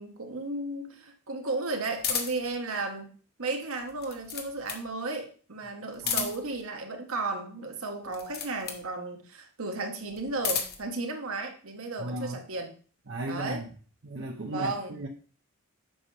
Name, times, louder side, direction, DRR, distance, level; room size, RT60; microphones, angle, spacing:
voice 1, 0.0-3.1 3.4-12.7 13.3-13.6 14.4-15.0, right 3 dB, 75° right, 3 dB, 1.3 m, -34 dB
sound 1, 2.0-2.5 3.8-4.9 5.9-6.6 8.1-8.9 10.1-10.9, left 7 dB, 45° left, 1.0 m, -32 dB
voice 2, 12.0-12.4 13.1-13.7 14.0-15.1, right 1 dB, 55° right, 1 dB, 0.7 m, -35 dB
7.8 x 5.6 x 3.3 m, 0.41 s
head